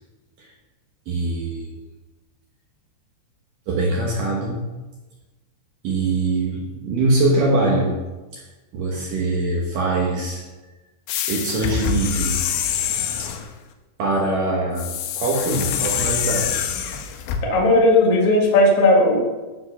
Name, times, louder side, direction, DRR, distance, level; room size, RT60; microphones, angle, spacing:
voice 1, 1.1-1.8 3.7-4.7 5.8-8.0 8.3-8.4 8.7-10.4 11.3-12.4 13.2-13.3 14.0-16.7, right 2 dB, 80° right, -2 dB, 1.9 m, -23 dB
sound 1, 11.1-13.5 14.8-17.4, left 8 dB, 85° left, 3.2 m, -25 dB
voice 2, 17.4-19.3, left 1 dB, 60° left, -2 dB, 1.5 m, -16 dB
13.5 x 4.8 x 5.5 m, 1.2 s
omnidirectional pair, 5.6 m